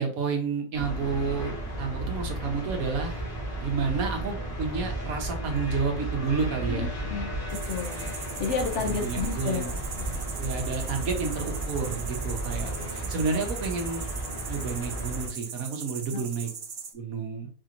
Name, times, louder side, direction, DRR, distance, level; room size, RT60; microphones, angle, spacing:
voice 1, 0.0-3.2 3.6-6.9 8.8-9.7 10.4-14.1 14.5-16.5 16.9-17.5, right 5 dB, 75° right, 4 dB, 1.2 m, -30 dB
sound 1, 0.7-15.3, right 1 dB, 90° left, 2.2 m, -34 dB
sound 2, 6.1-7.6, right 2 dB, 5° left, 1.0 m, -40 dB
voice 2, 6.7-7.3 7.7-8.1 8.4-9.8 12.6-13.1 16.1-16.2, left 5 dB, 65° left, 5 dB, 0.9 m, -32 dB
sound 3, 7.5-16.9, right 6 dB, 55° right, 0.6 m, -40 dB
4.9 x 2.8 x 2.5 m, 0.41 s
omnidirectional pair, 1.5 m